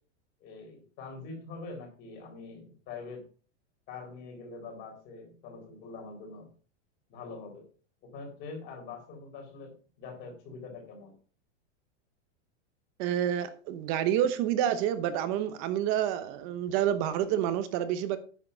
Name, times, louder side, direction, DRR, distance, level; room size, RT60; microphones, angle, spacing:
voice 1, 0.4-3.2 3.9-6.5 7.1-7.7 8.0-9.7 10.0-11.2, left 4 dB, 30° left, 4.0 m, -44 dB
voice 2, 13.0-18.2, right 10 dB, 30° right, 0.9 m, -28 dB
9.9 x 7.2 x 5.5 m
supercardioid pair, 175°, 35 cm